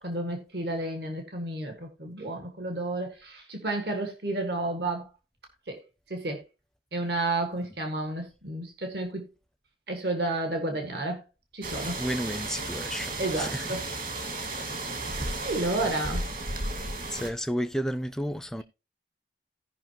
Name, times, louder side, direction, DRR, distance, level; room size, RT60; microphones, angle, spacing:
voice 1, 0.0-5.1 5.7-5.8 6.1-6.4 6.9-9.2 9.9-11.2 11.5-12.0 13.2-13.8 15.4-16.2, right 2 dB, 65° right, 1.7 m, -31 dB
sound 1, 11.6-17.3, right 2 dB, 50° right, 1.8 m, -34 dB
voice 2, 12.0-13.7 15.9-16.0 17.1-18.6, equal, 5° left, 0.4 m, -32 dB
17.0 x 5.7 x 2.9 m
head